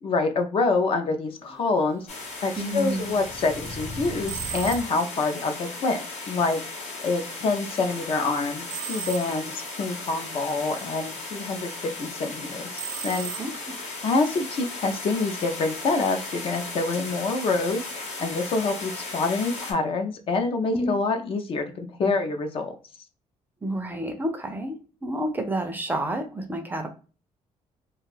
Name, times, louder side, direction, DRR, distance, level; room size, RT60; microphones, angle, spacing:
voice 1, 0.0-2.1 2.4-6.0 6.3-6.6 7.0-13.3 14.0-17.9 18.2-22.8, left 3 dB, 45° left, 6 dB, 0.5 m, -26 dB
sound 1, 1.3-5.1, equal, 25° left, 0.9 m, -41 dB
sound 2, 2.1-19.7, left 3 dB, 65° left, 1.0 m, -36 dB
voice 2, 2.6-3.2 13.4-13.5 20.7-20.9 22.0-22.1 23.6-26.9, right 1 dB, 15° right, 5 dB, 0.4 m, -29 dB
sound 3, 4.3-5.2 8.7-9.7 12.7-13.9, right 10 dB, 75° right, 0.6 m, -36 dB
2.5 x 2.3 x 3.2 m, 0.36 s
cardioid pair, 140°, 13 cm